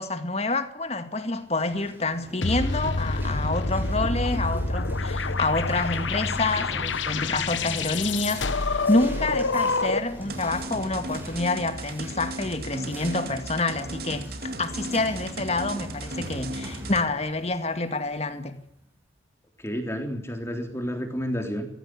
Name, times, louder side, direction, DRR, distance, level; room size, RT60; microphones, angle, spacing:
voice 1, 0.0-18.6, left 2 dB, 35° left, 2.1 m, -28 dB
sound 1, 1.4-18.8, equal, 10° right, 5.4 m, -42 dB
sound 2, 2.4-10.2, left 3 dB, 75° left, 1.2 m, -27 dB
sound 3, 10.3-17.1, right 2 dB, 50° right, 2.4 m, -36 dB
voice 2, 19.6-21.7, equal, 15° left, 3.5 m, -30 dB
21.5 x 15.5 x 9.9 m
head